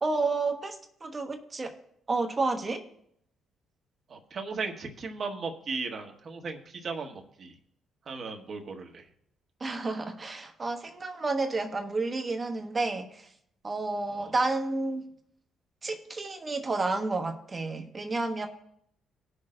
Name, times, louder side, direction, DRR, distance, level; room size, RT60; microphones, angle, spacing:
voice 1, 0.0-1.8 2.1-2.9 9.6-13.3 13.6-15.0 15.8-18.5, right 3 dB, 35° right, 5 dB, 1.3 m, -30 dB
voice 2, 4.1-7.5 8.1-9.0 14.1-14.3, right 4 dB, 55° right, 3 dB, 1.5 m, -36 dB
18.5 x 6.3 x 2.5 m, 0.74 s
cardioid pair, 75°, 0 cm